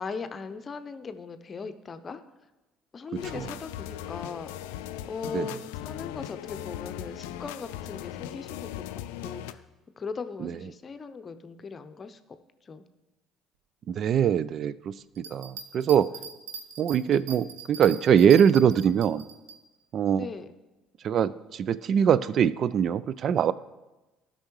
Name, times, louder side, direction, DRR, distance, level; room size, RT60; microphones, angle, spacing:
voice 1, 0.0-2.2 2.9-4.5 5.1-9.6 10.0-12.2 12.7-12.8 20.1-20.5, left 5 dB, 35° left, 10 dB, 0.7 m, -39 dB
sound 1, 3.2-9.5, left 12 dB, 75° left, 0.3 m, -39 dB
voice 2, 14.0-14.9 15.3-16.1 16.8-19.2 19.9-20.3 21.0-23.5, right 8 dB, 50° right, 18 dB, 0.3 m, -22 dB
sound 2, 15.1-19.6, right 6 dB, 75° right, 0.7 m, -42 dB
16.0 x 5.5 x 3.1 m, 1.1 s
hypercardioid pair, 55°, 0 cm